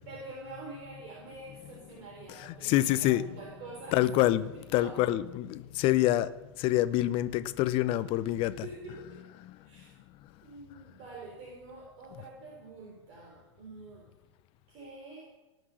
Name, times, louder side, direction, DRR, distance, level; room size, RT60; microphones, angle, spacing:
voice 1, 0.0-4.0 4.7-4.9 8.6-9.2 9.6-9.9 10.4-14.1 14.7-15.3, right 3 dB, 40° right, 3.7 m, -46 dB
voice 2, 2.5-3.2 3.9-6.3 6.6-8.6, left 14 dB, 35° left, 0.7 m, -26 dB
18.5 x 6.2 x 6.4 m
hypercardioid pair, 110°, 16 cm